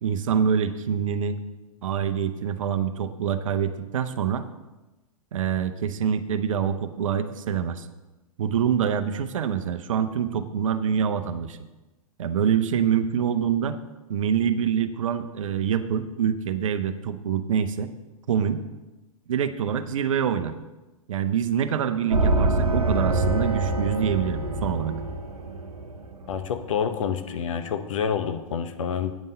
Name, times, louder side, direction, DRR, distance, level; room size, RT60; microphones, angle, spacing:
voice 1, 0.0-1.4 1.8-4.4 5.3-7.9 8.4-11.6 12.2-13.8 14.1-17.9 18.3-18.6 19.3-20.6 21.1-25.0, right 8 dB, 60° right, 10 dB, 0.7 m, -25 dB
sound 1, 22.1-26.8, right 2 dB, 85° right, 1.0 m, -25 dB
voice 2, 26.3-29.1, left 7 dB, 60° left, 9 dB, 0.9 m, -28 dB
9.1 x 5.4 x 6.5 m, 1.1 s
figure-of-eight pair, 105°, 19 cm